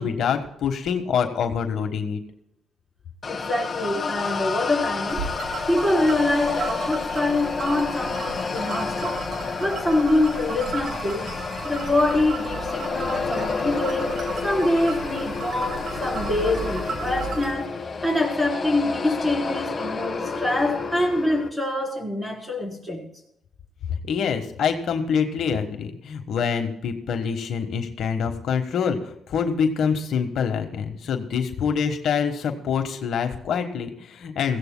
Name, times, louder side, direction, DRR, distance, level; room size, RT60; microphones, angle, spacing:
voice 1, 0.0-2.2 24.0-34.6, left 6 dB, 70° left, 1.4 m, -25 dB
sound 1, 3.2-21.5, left 4 dB, 35° left, 1.5 m, -30 dB
voice 2, 3.3-5.3 5.7-9.2 9.6-17.8 18.0-23.1, left 2 dB, 10° right, 4.1 m, -25 dB
sound 2, 5.1-17.5, right 4 dB, 65° right, 2.8 m, -35 dB
21.5 x 16.0 x 2.2 m
cardioid pair, 90°, 0 cm